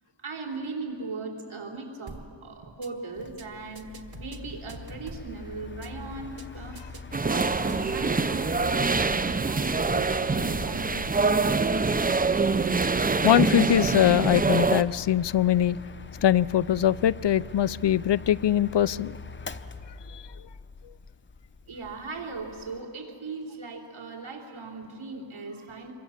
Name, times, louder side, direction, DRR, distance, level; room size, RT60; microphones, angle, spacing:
voice 1, 0.2-7.0 7.2-12.1 13.6-13.7 21.7-25.9, right 3 dB, 75° right, 1 dB, 3.9 m, -39 dB
sound 1, 2.1-2.3 2.6-2.9 3.2-3.4 3.7-5.3 5.6-5.9 6.2-6.4 6.7-8.1, right 4 dB, 50° right, 1.6 m, -45 dB
Mechanical fan, 3.2-22.8, left 3 dB, 25° left, 0.7 m, -43 dB
sound 2, 7.1-14.8, right 4 dB, 20° right, 0.5 m, -25 dB
voice 2, 13.2-15.8 16.2-19.2 20.1-20.2, left 11 dB, 60° left, 19 dB, 0.5 m, -22 dB
26.5 x 23.5 x 7.3 m, 2.7 s
wide cardioid pair, 110°, 49 cm